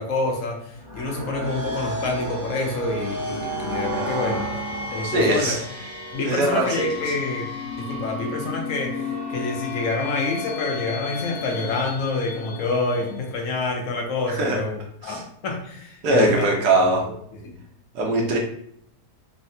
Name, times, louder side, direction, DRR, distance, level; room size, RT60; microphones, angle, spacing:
voice 1, 0.0-4.5 4.9-5.6 6.1-7.5 7.8-16.5 17.4-17.6, left 3 dB, 65° left, 1 dB, 0.9 m, -27 dB
sound 1, 0.7-13.3, left 1 dB, 40° right, 0.7 m, -32 dB
voice 2, 5.0-5.6 6.2-7.0 14.3-14.6 15.0-15.2 16.0-17.0 17.9-18.4, right 2 dB, 80° right, 0 dB, 1.2 m, -21 dB
3.2 x 2.1 x 2.6 m, 0.69 s
omnidirectional pair, 1.7 m